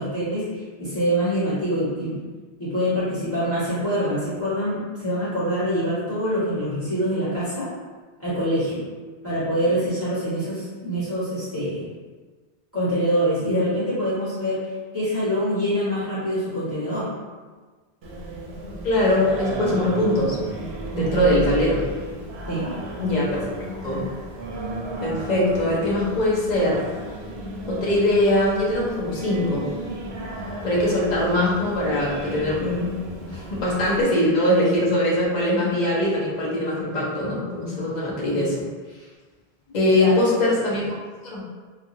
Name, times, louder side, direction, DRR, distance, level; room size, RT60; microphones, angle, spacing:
voice 1, 0.0-2.2 2.6-7.7 8.2-8.8 9.2-11.9 12.7-14.6 14.9-17.1 20.9-21.3 22.5-22.7 39.9-40.1, equal, 15° left, -12 dB, 1.4 m, -25 dB
Singing, 18.0-34.0, right 1 dB, 80° right, 0.8 m, -34 dB
voice 2, 18.8-20.4 20.9-21.8 23.0-23.4 23.8-24.0 25.0-26.9 27.7-29.7 30.6-32.9 33.3-38.6 39.7-40.9 41.2-41.4, left 1 dB, 45° left, -5 dB, 0.8 m, -22 dB
3.1 x 2.4 x 2.6 m, 1.4 s
omnidirectional pair, 1.1 m